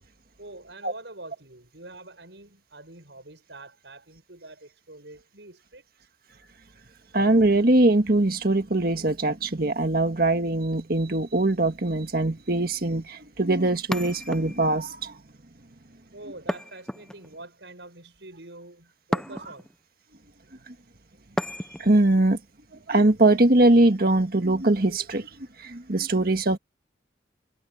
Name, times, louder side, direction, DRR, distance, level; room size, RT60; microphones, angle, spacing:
voice 1, 0.4-5.8 16.1-19.7, right 2 dB, 75° right, 7.7 m, -45 dB
voice 2, 7.1-15.2 20.7-20.8 21.8-22.4 22.9-25.3 25.6-26.6, right 2 dB, 55° right, 1.7 m, -22 dB
sound 1, 13.9-14.9 16.5-17.5 19.1-19.7 21.4-22.0, equal, 5° left, 0.6 m, -32 dB
head